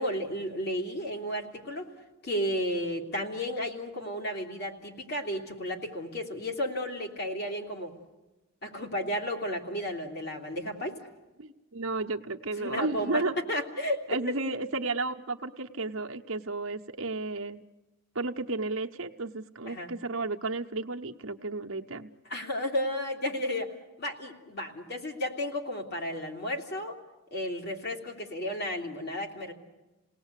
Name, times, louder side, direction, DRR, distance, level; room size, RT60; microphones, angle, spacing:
voice 1, 0.0-1.9 2.2-7.9 8.6-11.0 12.6-13.2 13.5-14.2 19.6-19.9 22.3-23.7 24.0-26.9 27.3-29.5, equal, 50° left, 2 dB, 3.0 m, -33 dB
voice 2, 11.4-13.3 14.1-17.6 18.1-22.1, right 3 dB, 70° right, 4 dB, 1.0 m, -33 dB
28.5 x 18.5 x 8.3 m, 1.1 s
head